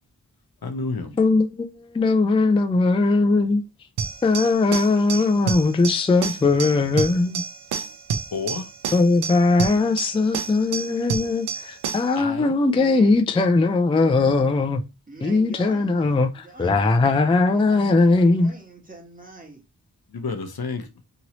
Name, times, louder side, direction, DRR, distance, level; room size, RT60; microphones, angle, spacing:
voice 1, 0.6-1.1 8.3-8.7 12.2-12.6 20.1-20.9, left 4 dB, 65° left, 0.7 m, -30 dB
voice 2, 1.2-3.6 4.2-7.4 8.9-14.8 15.2-18.5, left 3 dB, 15° left, 0.3 m, -20 dB
sound 1, 4.0-12.2, right 6 dB, 85° right, 0.6 m, -30 dB
voice 3, 12.7-13.2 15.1-16.1 16.4-17.0 17.6-19.6, right 2 dB, 20° right, 1.3 m, -44 dB
3.0 x 2.7 x 2.9 m
wide cardioid pair, 50°, 39 cm